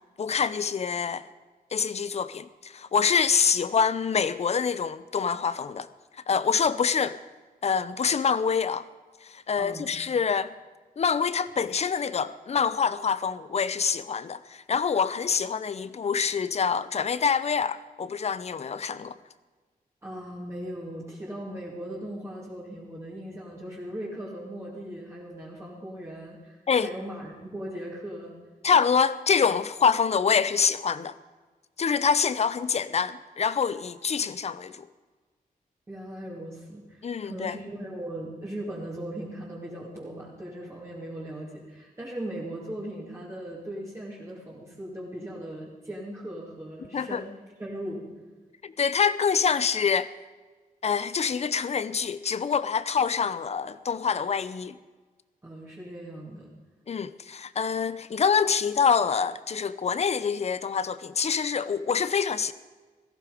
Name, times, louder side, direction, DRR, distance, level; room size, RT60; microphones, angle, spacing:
voice 1, 0.2-1.3 1.7-5.9 6.3-7.2 7.6-8.9 9.2-10.5 11.0-19.2 26.7-26.9 28.6-31.2 31.8-34.9 37.0-37.5 46.9-47.2 48.6-50.1 50.8-54.8 56.9-62.5, left 6 dB, 45° left, 0.6 m, -26 dB
voice 2, 9.6-9.9 20.0-28.4 35.9-47.3 47.6-48.1 55.4-56.5, right 1 dB, 20° right, 2.6 m, -38 dB
17.0 x 14.5 x 5.1 m
wide cardioid pair, 130°, 15 cm